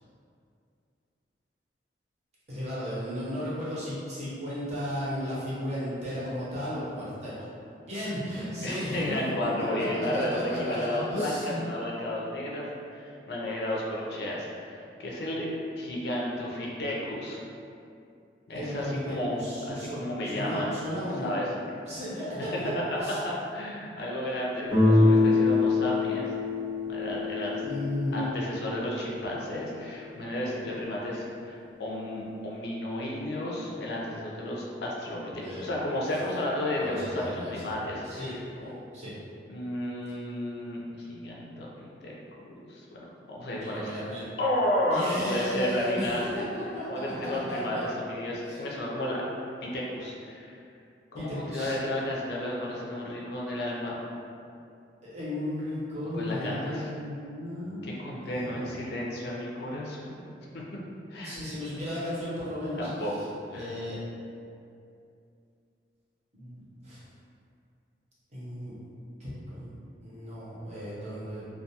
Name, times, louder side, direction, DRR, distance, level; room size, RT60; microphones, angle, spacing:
voice 1, 2.5-7.5 7.9-9.2 9.6-9.9 10.1-11.6 18.5-20.0 20.2-21.3 21.8-23.2 27.6-28.3 35.3-35.7 36.8-37.6 38.0-38.3 38.9-39.1 43.5-44.2 44.9-47.8 48.5-48.6 51.1-51.8 55.0-58.7 61.2-63.2 63.5-64.0 66.3-67.0 68.3-68.7 69.2-69.7 70.0-71.4, equal, 40° right, -10 dB, 0.7 m, -35 dB
voice 2, 8.6-17.4 18.5-19.4 19.7-20.7 21.2-21.5 22.9-23.0 23.2-26.3 26.9-27.6 28.1-38.3 38.6-38.7 39.5-42.2 42.6-43.9 44.4-46.4 46.9-49.2 49.6-50.5 51.1-54.0 56.1-56.9 57.8-60.3 60.5-60.6 61.1-61.3 62.8-63.7, left 1 dB, 65° left, -3 dB, 0.4 m, -32 dB
Guitar, 24.7-29.5, left 3 dB, 5° right, 0.7 m, -25 dB
2.2 x 2.2 x 2.7 m, 2.5 s
head